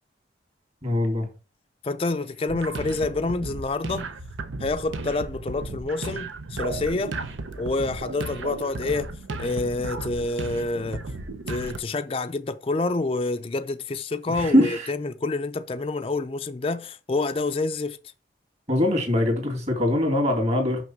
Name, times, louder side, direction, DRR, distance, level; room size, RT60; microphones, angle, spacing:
voice 1, 0.8-1.3 14.4-14.8 18.7-20.8, left 1 dB, 35° right, 2.4 m, -22 dB
voice 2, 1.8-4.1 4.6-7.1 7.6-9.1 9.4-11.1 11.5-18.0, left 3 dB, 30° left, 0.4 m, -28 dB
wtfgroove cut, 2.5-11.8, right 3 dB, 85° right, 0.9 m, -34 dB
5.9 x 5.9 x 5.8 m
head